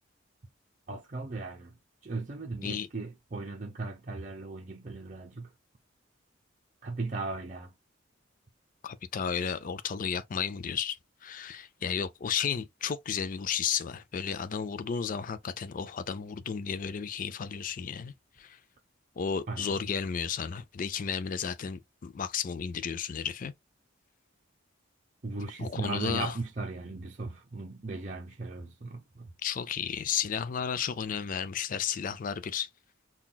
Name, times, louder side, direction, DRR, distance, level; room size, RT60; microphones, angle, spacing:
voice 1, 0.9-5.5 6.8-7.7 19.5-19.8 25.2-29.3, right 3 dB, 40° right, 0.6 m, -37 dB
voice 2, 8.8-18.6 19.2-23.5 25.6-26.4 29.4-32.7, left 7 dB, 45° left, 0.4 m, -33 dB
5.6 x 2.3 x 2.2 m
head